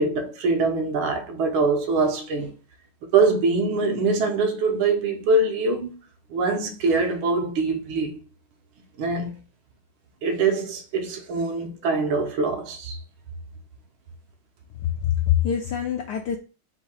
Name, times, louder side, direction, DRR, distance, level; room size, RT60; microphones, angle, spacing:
voice 1, 0.0-2.5 3.1-5.9 6.3-8.2 9.0-9.4 10.2-13.0, right 3 dB, 75° right, 1.6 m, -23 dB
voice 2, 14.8-16.4, left 10 dB, 75° left, 0.9 m, -24 dB
3.9 x 2.7 x 4.2 m
omnidirectional pair, 2.3 m